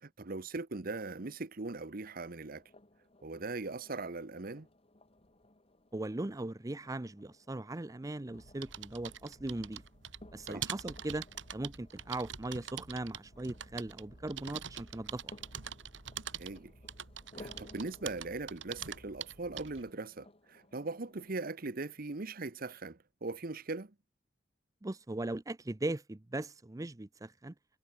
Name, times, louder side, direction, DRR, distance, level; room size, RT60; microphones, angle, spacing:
voice 1, 0.0-2.6 3.2-4.7 10.5-10.7 16.4-16.7 17.4-23.9, right 3 dB, 50° right, 1.1 m, -40 dB
sound 1, 2.1-21.4, left 1 dB, 30° left, 2.8 m, -60 dB
voice 2, 5.9-9.8 10.3-11.3 11.5-15.4 24.8-27.5, right 2 dB, 20° right, 0.6 m, -39 dB
sound 2, 8.3-19.9, right 8 dB, 80° right, 2.7 m, -45 dB
head